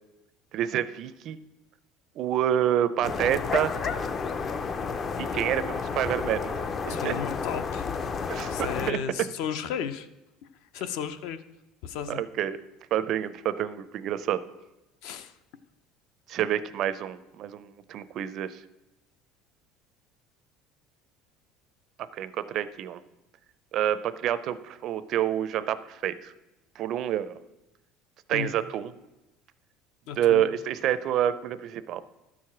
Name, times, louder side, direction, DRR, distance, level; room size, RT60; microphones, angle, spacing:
voice 1, 0.5-1.4 2.2-3.7 5.2-7.2 8.3-9.0 12.1-12.6 12.9-14.4 16.3-18.6 22.1-23.0 23.7-26.3 26.8-27.4 28.3-28.9 30.2-32.0, right 10 dB, 40° right, 14 dB, 0.4 m, -28 dB
sound 1, 3.0-8.9, left 5 dB, 25° left, 0.4 m, -31 dB
voice 2, 6.9-8.0 8.5-10.1 10.4-11.4 11.8-12.2 15.0-15.4 28.3-28.5 30.1-30.5, left 8 dB, 65° left, 12 dB, 0.6 m, -34 dB
12.5 x 4.8 x 5.8 m, 0.97 s
cardioid pair, 170°, 0 cm